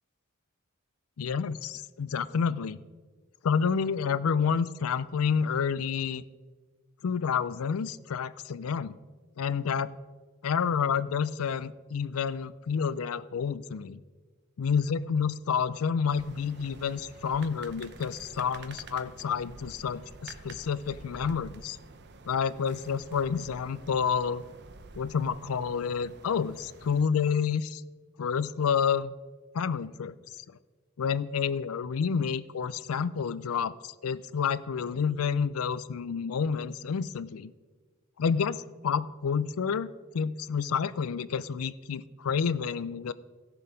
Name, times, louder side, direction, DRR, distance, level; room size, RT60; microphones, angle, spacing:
voice 1, 1.2-2.8 3.4-6.2 7.0-9.0 9.4-9.9 10.4-14.0 14.6-21.8 22.3-24.4 24.9-27.8 28.2-29.1 29.5-30.1 31.0-37.5 38.2-39.9 40.1-43.1, left 6 dB, 90° left, 17 dB, 0.4 m, -29 dB
sound 1, 16.1-27.0, right 3 dB, 55° right, 0.8 m, -49 dB
16.0 x 6.8 x 5.1 m, 1.4 s
head